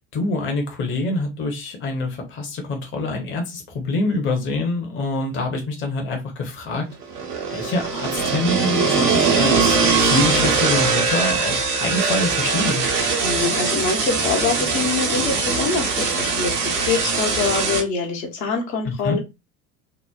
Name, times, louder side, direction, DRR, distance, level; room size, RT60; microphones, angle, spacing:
voice 1, 0.0-6.8 7.5-12.8 18.8-19.2, left 2 dB, 25° left, 2 dB, 0.8 m, -25 dB
sound 1, 7.0-17.8, right 4 dB, 80° right, 0.9 m, -21 dB
voice 2, 13.2-19.2, left 4 dB, 60° left, 1 dB, 0.9 m, -25 dB
3.0 x 2.1 x 2.3 m, 0.24 s
figure-of-eight pair, 70°, 45 cm